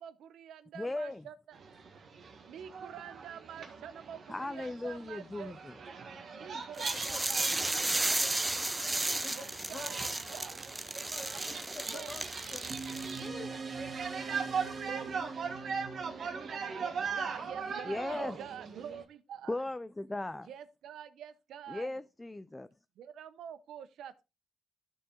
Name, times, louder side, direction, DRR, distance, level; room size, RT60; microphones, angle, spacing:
voice 1, 0.0-1.6 2.5-5.5 6.3-7.9 9.3-10.0 10.3-10.7 11.9-12.1 14.9-15.2 16.7-19.7 20.5-22.0 23.0-24.2, right 9 dB, 85° right, 0.7 m, -47 dB
voice 2, 0.8-1.2 4.3-5.8 17.9-18.4 19.5-20.5 21.7-22.7, left 2 dB, 15° left, 0.4 m, -37 dB
sound 1, 1.5-19.0, right 5 dB, 55° right, 1.8 m, -41 dB
voice 3, 6.5-8.6 9.0-10.0 11.4-12.8 13.2-13.7, left 3 dB, 30° left, 1.8 m, -49 dB
sound 2, 6.8-13.3, right 2 dB, 15° right, 0.7 m, -34 dB
sound 3, 12.7-17.5, right 4 dB, 35° right, 2.1 m, -43 dB
13.0 x 4.7 x 3.8 m
cardioid pair, 90°, 0 cm